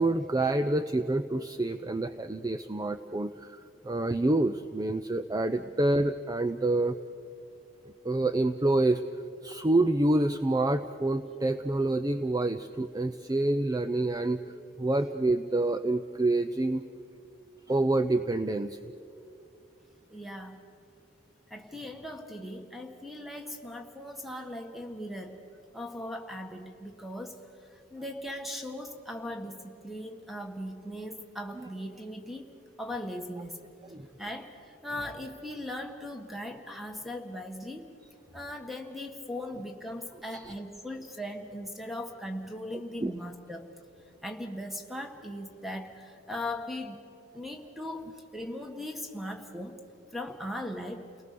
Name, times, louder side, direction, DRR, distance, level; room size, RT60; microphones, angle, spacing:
voice 1, 0.0-7.0 8.0-9.0 9.4-14.4 14.8-16.8 17.7-18.8 33.9-34.1 40.3-40.5 43.0-43.1, right 2 dB, 20° right, 10 dB, 0.5 m, -27 dB
voice 2, 20.1-20.7 21.5-25.4 25.7-27.4 27.9-32.5 32.8-33.6 34.2-37.8 38.3-43.7 44.2-47.0 47.3-49.8 50.1-51.1, left 1 dB, ahead, 4 dB, 1.7 m, -39 dB
30.0 x 19.0 x 6.8 m, 2.6 s
head